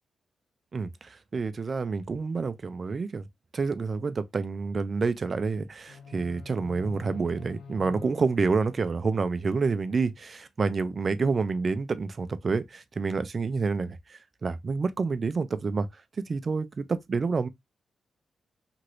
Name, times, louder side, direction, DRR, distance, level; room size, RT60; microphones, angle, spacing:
voice 1, 0.7-3.3 3.5-15.9 16.2-17.5, right 4 dB, 30° right, 0.3 m, -28 dB
sound 1, 5.9-9.9, left 5 dB, 80° left, 0.6 m, -47 dB
2.9 x 2.5 x 2.9 m
wide cardioid pair, 175°, 0 cm